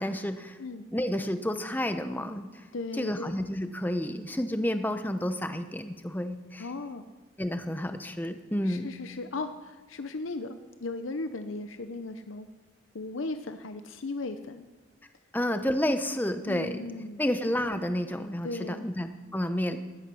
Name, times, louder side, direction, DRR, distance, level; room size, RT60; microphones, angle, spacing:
voice 1, 0.0-0.6 0.9-2.6 2.9-6.7 7.4-8.9 15.3-16.8 17.2-19.8, left 1 dB, 10° left, 9 dB, 0.7 m, -30 dB
voice 2, 2.7-3.4 6.6-7.1 8.6-12.5 12.9-14.6 16.5-17.2 18.4-18.9, left 3 dB, 80° left, 9 dB, 0.7 m, -36 dB
16.0 x 11.5 x 6.2 m, 1.3 s
head